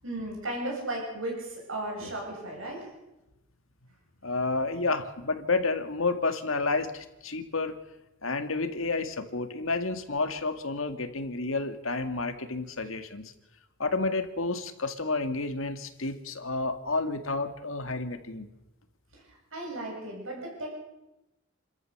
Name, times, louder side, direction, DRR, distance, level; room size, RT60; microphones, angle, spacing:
voice 1, 0.0-2.9 19.1-20.8, right 1 dB, 70° right, -1 dB, 8.0 m, -35 dB
voice 2, 4.2-7.8 8.2-13.2 13.8-18.5, left 3 dB, 70° left, 8 dB, 2.0 m, -30 dB
29.5 x 13.5 x 6.6 m, 0.96 s
head